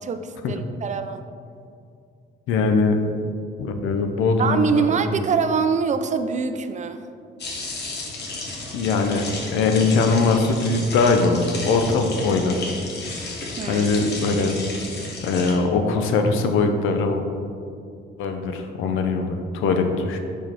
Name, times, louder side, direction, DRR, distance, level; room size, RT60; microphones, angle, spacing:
voice 1, 0.0-1.2 4.4-7.0 13.6-13.9, right 5 dB, 35° right, 9 dB, 0.4 m, -24 dB
voice 2, 2.5-3.0 3.6-5.2 8.7-9.2 9.5-12.7 13.7-14.5 15.2-17.3 18.2-20.2, left 4 dB, 90° left, 5 dB, 0.6 m, -21 dB
sound 1, 7.4-15.5, left 2 dB, 60° left, 1.2 m, -33 dB
5.1 x 4.5 x 4.4 m, 2.4 s
cardioid pair, 90°, 20 cm